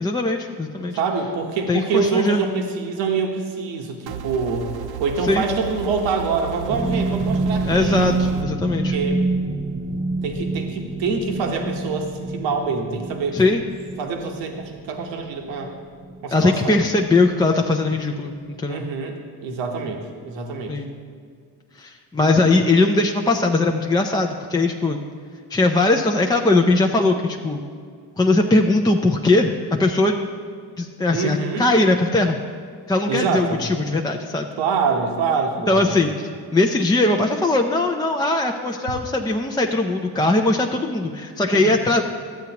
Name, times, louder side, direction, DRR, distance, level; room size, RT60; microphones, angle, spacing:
voice 1, 0.0-1.0 1.7-2.4 5.2-5.5 7.7-9.0 13.3-13.6 16.3-18.9 20.7-20.9 21.7-25.0 25.5-27.6 28.2-30.3 30.8-32.4 32.9-34.5 35.7-36.1 36.5-42.0, left 2 dB, 10° left, 2 dB, 0.4 m, -20 dB
voice 2, 0.9-4.7 5.0-8.1 8.9-9.2 10.2-13.5 14.0-15.7 16.2-16.8 18.7-20.7 31.1-31.7 33.1-33.6 34.6-36.1 41.5-41.8, right 4 dB, 80° right, 2 dB, 1.1 m, -25 dB
sound 1, 4.1-8.4, right 9 dB, 60° right, 0.6 m, -34 dB
sound 2, 6.7-17.4 17.7-18.0 18.4-18.5, right 2 dB, 25° right, 0.9 m, -27 dB
12.5 x 8.1 x 2.9 m, 2.1 s
cardioid pair, 90°, 43 cm